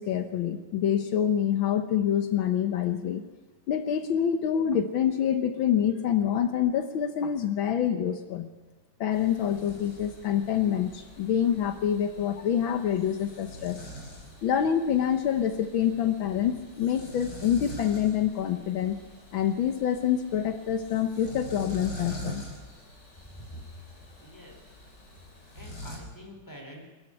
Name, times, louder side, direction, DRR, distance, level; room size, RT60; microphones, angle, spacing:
voice 1, 0.0-3.2 3.7-8.5 9.0-13.8 14.4-19.0 19.3-22.4, left 9 dB, 75° left, 8 dB, 1.8 m, -26 dB
sound 1, 9.1-26.0, equal, 55° left, 4.4 m, -45 dB
voice 2, 23.2-23.6 24.2-24.8 25.5-26.9, equal, 10° left, 2 dB, 4.2 m, -46 dB
23.0 x 14.0 x 10.0 m, 1.2 s
omnidirectional pair, 2.2 m